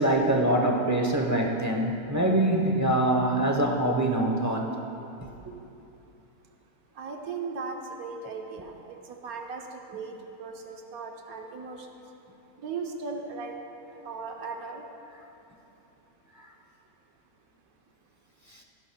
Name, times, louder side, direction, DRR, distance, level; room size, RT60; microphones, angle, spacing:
voice 1, 0.0-4.7, right 1 dB, 15° right, 0 dB, 0.6 m, -24 dB
voice 2, 7.0-11.9 12.6-13.6 14.0-14.8, right 4 dB, 80° right, 2 dB, 1.3 m, -37 dB
16.5 x 11.0 x 2.2 m, 2.9 s
omnidirectional pair, 1.5 m